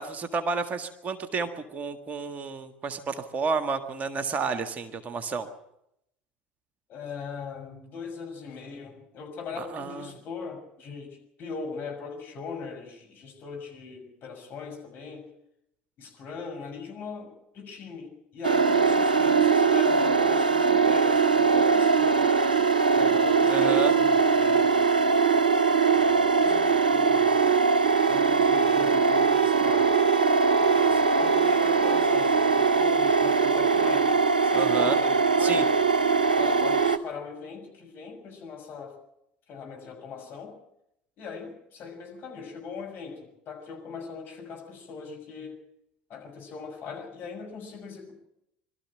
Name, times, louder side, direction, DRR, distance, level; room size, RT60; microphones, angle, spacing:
voice 1, 0.0-5.5 9.6-10.1 23.5-23.9 34.5-35.0 35.4-35.6, right 4 dB, 35° right, 8 dB, 1.7 m, -31 dB
voice 2, 6.9-15.3 16.0-22.3 22.9-24.9 25.9-27.5 28.0-29.9 30.6-34.1 34.4-35.7 36.4-39.0 39.5-40.6 41.2-45.6 46.1-48.1, left 5 dB, 45° left, 1 dB, 6.4 m, -39 dB
sound 1, 18.4-37.0, right 4 dB, 85° right, 0.7 m, -21 dB
23.0 x 13.5 x 9.0 m, 0.80 s
figure-of-eight pair, 65°, 5 cm